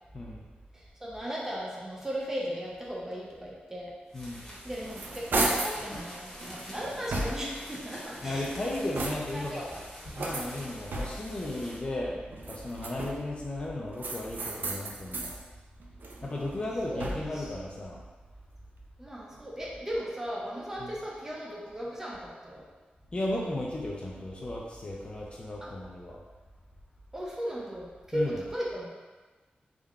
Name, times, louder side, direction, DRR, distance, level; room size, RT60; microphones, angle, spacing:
voice 1, 0.7-3.9 4.6-8.7 9.3-9.6 16.9-17.4 19.0-22.6 25.6-25.7 27.1-28.9, equal, 15° right, -4 dB, 0.6 m, -36 dB
voice 2, 4.1-4.4 8.2-9.7 10.1-15.3 16.2-18.0 20.8-21.0 23.1-26.2 28.1-28.5, left 1 dB, 30° left, -3 dB, 0.4 m, -35 dB
sound 1, 4.1-11.8, equal, 15° left, 1.0 m, -46 dB
sound 2, 4.5-5.8 6.4-7.7 8.3-9.5 10.2-11.4 12.3-13.4 14.0-15.4 15.8-17.5, right 2 dB, 70° right, 0.4 m, -34 dB
3.6 x 2.1 x 3.5 m, 1.3 s
wide cardioid pair, 155°, 3 cm